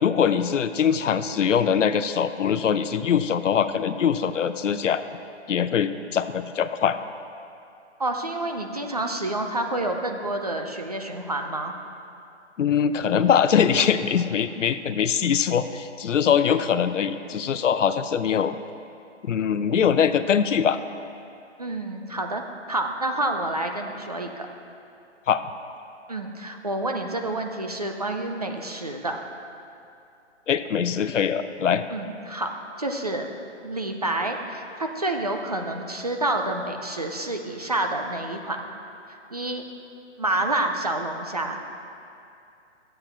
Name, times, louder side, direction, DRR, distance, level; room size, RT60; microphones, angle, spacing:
voice 1, 0.0-5.0 5.5-7.0 12.6-18.6 19.3-20.8 25.3-25.4 30.5-31.8, left 7 dB, 85° left, 11 dB, 0.7 m, -22 dB
voice 2, 8.0-11.7 21.6-24.5 26.1-29.2 31.9-32.5 32.8-33.3 33.6-38.6 39.3-39.6 40.2-41.6, right 2 dB, 35° right, 4 dB, 0.5 m, -28 dB
12.0 x 7.8 x 4.4 m, 2.6 s
hypercardioid pair, 175°, 36 cm